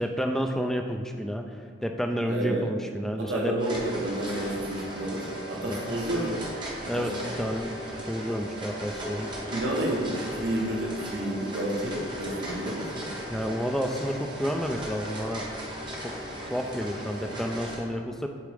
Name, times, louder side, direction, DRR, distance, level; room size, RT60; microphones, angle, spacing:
voice 1, 0.0-3.5 5.7-5.8 6.9-7.8 8.1-9.3 13.3-15.5 16.0-16.2 16.5-18.3, equal, ahead, 4 dB, 0.3 m, -30 dB
voice 2, 2.3-2.7 3.2-6.5 6.9-7.3 9.5-13.2, right 1 dB, 80° right, -3 dB, 0.9 m, -30 dB
sound 1, 3.6-17.8, equal, 25° right, 1.0 m, -37 dB
8.3 x 3.7 x 3.4 m, 2.1 s
head